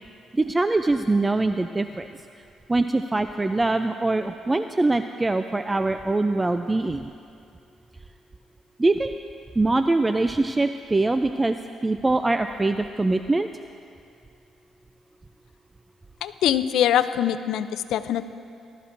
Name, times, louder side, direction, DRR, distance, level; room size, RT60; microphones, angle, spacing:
voice 1, 0.3-2.1 2.7-7.1 8.8-9.1 9.6-13.5, right 2 dB, 20° right, 8 dB, 0.3 m, -23 dB
voice 2, 16.2-18.3, left 10 dB, 80° left, 12 dB, 0.4 m, -23 dB
18.5 x 12.5 x 2.6 m, 2.4 s
cardioid pair, 90°, 0 cm